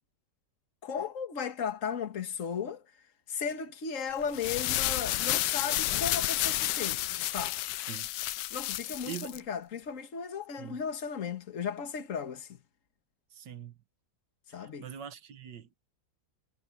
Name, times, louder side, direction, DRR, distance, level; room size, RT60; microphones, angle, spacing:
voice 1, 0.8-2.8 3.3-7.6 8.5-12.5 14.5-14.8, left 6 dB, 50° left, 1.9 m, -35 dB
sound 1, 4.2-9.4, left 15 dB, 90° left, 1.2 m, -31 dB
voice 2, 8.8-9.5 10.6-10.8 13.3-13.8 14.5-15.9, right 9 dB, 80° right, 1.9 m, -44 dB
omnidirectional pair, 1.8 m